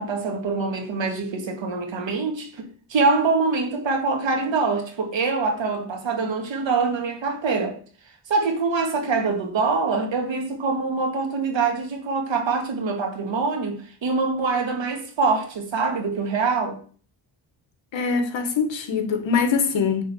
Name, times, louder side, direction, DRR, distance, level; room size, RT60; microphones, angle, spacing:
voice 1, 0.0-7.8 8.3-16.8, right 4 dB, 70° right, 2.1 m, -24 dB
voice 2, 17.9-20.0, left 5 dB, 70° left, 1.7 m, -23 dB
9.4 x 3.8 x 7.1 m
wide cardioid pair, 115°, 46 cm